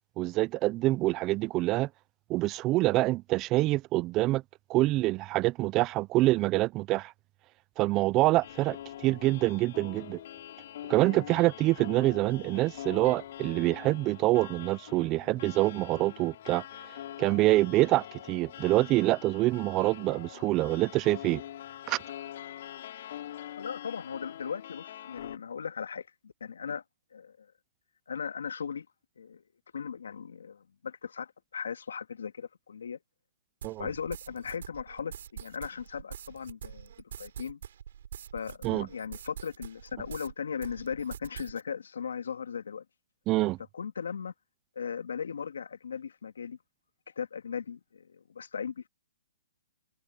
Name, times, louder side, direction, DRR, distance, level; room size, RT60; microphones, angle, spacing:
voice 1, 0.2-1.9 2.3-4.4 4.7-7.1 7.8-10.2 10.9-16.6 17.2-21.4 21.9-22.0 33.6-33.9 38.6-38.9 43.3-43.6, right 18 dB, 25° right, 0.4 m, -26 dB
sound 1, 8.4-25.4, left 11 dB, 55° left, 4.0 m, -44 dB
voice 2, 23.6-26.8 27.1-27.5 28.1-28.9 29.2-29.4 29.7-33.0 33.8-36.9 37.2-37.6 38.3-42.8 43.7-44.3 44.8-46.6 47.2-48.9, left 6 dB, 85° left, 2.2 m, -38 dB
sound 2, 33.6-40.3 40.6-41.6, right 9 dB, 65° right, 7.2 m, -45 dB
hypercardioid pair, 150°, 0 cm